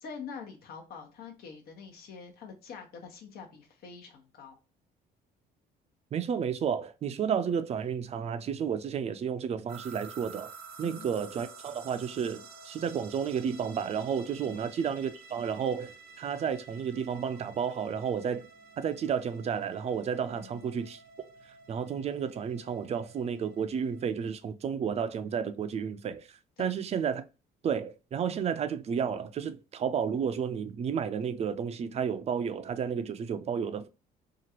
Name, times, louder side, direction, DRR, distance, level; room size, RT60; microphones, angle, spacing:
voice 1, 0.0-4.6 10.8-11.1 14.4-14.7 20.4-20.7 26.6-26.7, left 5 dB, 65° left, 1.0 m, -45 dB
voice 2, 6.1-10.5 10.8-18.5 18.8-21.0 21.7-27.2 27.6-33.9, right 7 dB, 40° right, 0.4 m, -32 dB
sound 1, 9.7-24.3, right 4 dB, 75° right, 0.7 m, -51 dB
2.9 x 2.4 x 2.9 m
cardioid pair, 110°, 17 cm